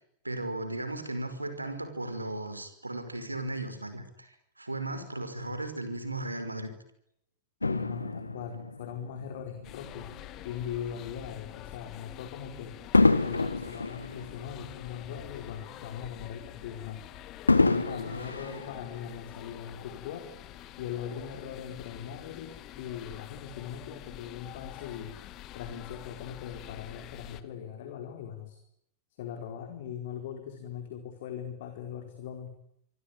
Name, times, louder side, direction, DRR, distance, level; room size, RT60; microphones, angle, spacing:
voice 1, 0.2-6.7, right 2 dB, 85° right, 10 dB, 5.4 m, -36 dB
Fireworks, 7.6-10.2 10.9-11.1 12.9-15.5 15.8-15.9 17.5-19.4 20.1-20.2, left 3 dB, 80° left, 1.5 m, -28 dB
voice 2, 7.6-10.2 10.4-12.8 13.2-17.1 17.5-20.3 20.8-25.2 25.5-28.6 29.2-32.5, left 8 dB, 55° left, 6 dB, 4.5 m, -40 dB
sound 1, 9.6-27.4, left 13 dB, 35° left, 2.4 m, -46 dB
27.5 x 23.5 x 8.8 m, 0.74 s
figure-of-eight pair, 90°, 0 cm